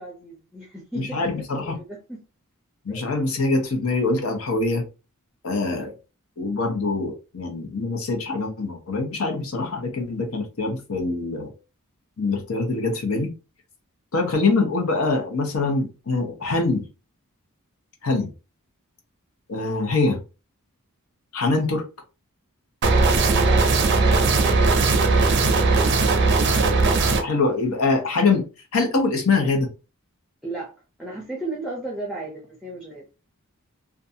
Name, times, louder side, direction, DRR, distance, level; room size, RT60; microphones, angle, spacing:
voice 1, 0.0-2.2 2.9-3.0 23.3-25.9 30.4-33.1, right 2 dB, ahead, 0.5 m, -36 dB
voice 2, 0.9-1.8 2.8-4.8 5.4-5.9 6.4-11.5 12.2-13.3 14.1-16.8 18.0-18.3 19.5-20.2 21.3-21.8 27.2-28.4 28.7-29.7, left 3 dB, 65° left, 0.8 m, -24 dB
sound 1, 22.8-27.2, right 3 dB, 50° right, 0.5 m, -18 dB
2.6 x 2.3 x 2.7 m
head